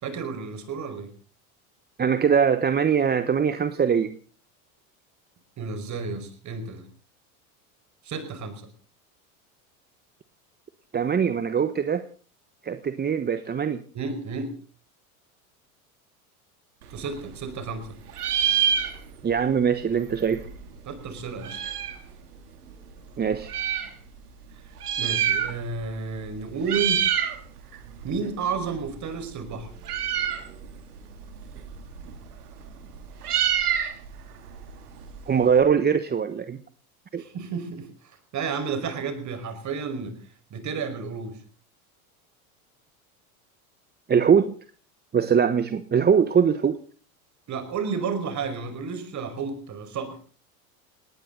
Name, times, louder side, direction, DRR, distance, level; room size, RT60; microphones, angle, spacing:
voice 1, 0.0-1.1 5.6-6.9 8.0-8.6 13.9-14.5 16.9-18.0 20.9-21.6 24.5-24.7 25.0-27.1 28.0-29.7 37.2-40.2 40.5-41.4 47.5-50.2, right 5 dB, 40° right, 9 dB, 5.3 m, -32 dB
voice 2, 2.0-4.1 10.9-12.0 12.6-13.8 19.2-20.4 23.2-23.5 35.3-36.6 37.1-37.2 44.1-44.5 45.1-46.8, right 7 dB, 20° right, 11 dB, 1.1 m, -22 dB
Meow, 16.8-17.8 18.1-19.4 19.7-19.8 19.9-22.1 22.7-23.9 24.7-25.8 26.1-26.3 26.6-27.4 27.7-35.6, right 9 dB, 90° right, 3.0 m, -28 dB
19.5 x 18.5 x 3.9 m, 0.39 s
hypercardioid pair, 95°, 45 cm